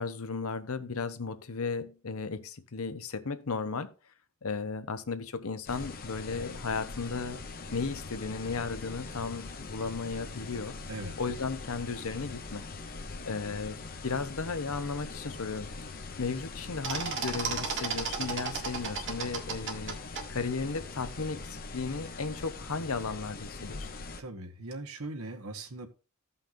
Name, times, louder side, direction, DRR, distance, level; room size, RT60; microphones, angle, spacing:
voice 1, 0.0-3.9 4.4-7.4 7.7-10.8 11.2-12.6 13.3-15.7 16.2-20.0 20.3-23.9, left 4 dB, 75° left, 0.8 m, -35 dB
sound 1, 5.7-24.2, left 3 dB, 45° left, 0.9 m, -42 dB
sound 2, 16.8-20.2, right 5 dB, 60° right, 1.7 m, -34 dB
voice 2, 24.2-25.9, right 2 dB, 80° right, 1.3 m, -40 dB
14.5 x 5.6 x 2.6 m
head